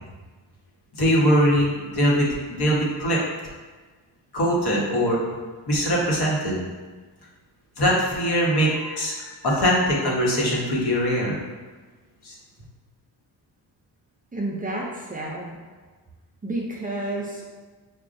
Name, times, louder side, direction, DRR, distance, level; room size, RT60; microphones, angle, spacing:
voice 1, 0.9-3.2 4.3-5.2 5.7-6.6 7.8-11.4 12.2-12.3, equal, 65° left, -4 dB, 1.2 m, -22 dB
voice 2, 14.3-15.6 16.4-17.6, right 2 dB, 20° right, -3 dB, 0.4 m, -30 dB
6.1 x 2.3 x 2.5 m, 1.4 s
wide cardioid pair, 135°, 42 cm